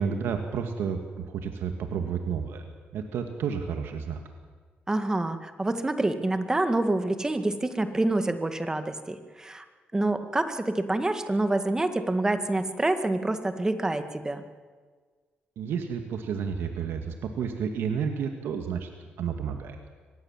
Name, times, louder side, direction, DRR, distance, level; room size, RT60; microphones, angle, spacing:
voice 1, 0.0-2.6 2.9-4.2 15.6-18.9 19.2-19.8, right 6 dB, 80° right, 5 dB, 2.0 m, -31 dB
voice 2, 4.9-9.6 9.9-14.4, right 2 dB, 15° right, 8 dB, 2.0 m, -27 dB
24.5 x 19.5 x 7.5 m, 1.5 s
cardioid pair, 90°, 4 cm